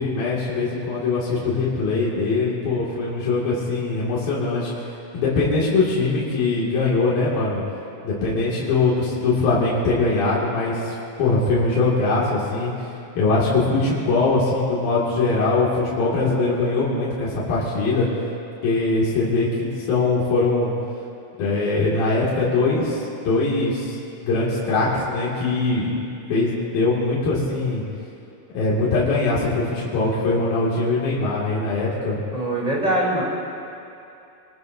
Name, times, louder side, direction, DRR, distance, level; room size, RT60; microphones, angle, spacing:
voice 1, 0.0-4.7 5.1-7.6 8.0-12.7 13.2-18.1 18.6-20.7 21.4-24.0 24.2-26.0 26.3-27.8 28.5-32.2, left 3 dB, 75° left, -7 dB, 4.1 m, -22 dB
voice 2, 32.3-33.2, right 1 dB, 10° right, -4 dB, 2.9 m, -22 dB
26.0 x 19.5 x 2.7 m, 2.7 s
omnidirectional pair, 4.2 m